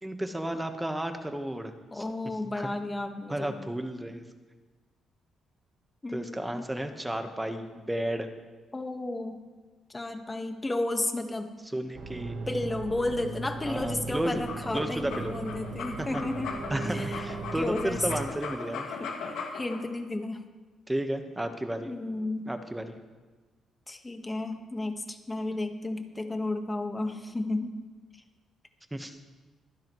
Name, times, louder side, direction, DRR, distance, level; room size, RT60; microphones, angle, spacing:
voice 1, 0.0-2.0 2.5-2.7 3.3-4.2 6.1-8.3 11.7-12.4 13.7-14.4 14.7-15.4 16.0-16.2 16.7-18.9 20.9-21.9 22.5-22.8 28.9-29.2, right 1 dB, 10° right, 6 dB, 1.3 m, -33 dB
voice 2, 1.9-3.6 6.0-6.6 8.7-9.4 9.9-11.5 12.5-17.2 17.5-18.1 19.0-20.4 21.8-22.5 23.9-27.8, left 2 dB, 20° left, 5 dB, 1.6 m, -33 dB
sound 1, 11.9-18.3, right 3 dB, 60° right, 1.4 m, -38 dB
sound 2, 14.3-19.8, left 5 dB, 80° left, 2.2 m, -38 dB
25.0 x 10.0 x 3.2 m, 1.3 s
cardioid pair, 90°, 0 cm